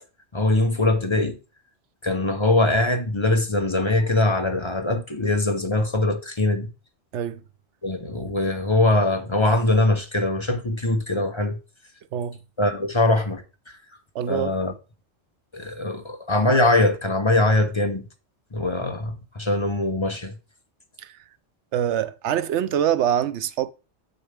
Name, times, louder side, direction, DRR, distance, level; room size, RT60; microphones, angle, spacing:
voice 1, 0.3-1.4 2.0-6.7 7.8-11.6 12.6-13.8 14.3-14.7 15.5-18.1 18.5-20.3, left 2 dB, 30° left, 0.8 m, -22 dB
voice 2, 14.1-14.5 21.0-21.1 21.7-23.7, right 10 dB, 85° right, 0.9 m, -24 dB
8.0 x 6.7 x 3.4 m
omnidirectional pair, 1.2 m